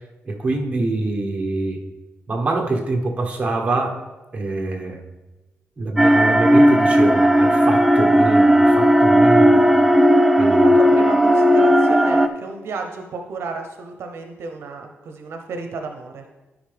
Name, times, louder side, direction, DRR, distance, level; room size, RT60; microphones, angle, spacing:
voice 1, 0.2-1.8 2.3-4.0 4.3-5.0 5.8-9.7 10.4-10.6, right 3 dB, 30° right, 0 dB, 1.2 m, -24 dB
sound 1, 6.0-12.3, equal, 5° right, 0.3 m, -14 dB
voice 2, 10.4-16.2, right 4 dB, 70° right, 4 dB, 0.8 m, -32 dB
12.5 x 5.1 x 3.4 m, 1.1 s
wide cardioid pair, 135°, 4 cm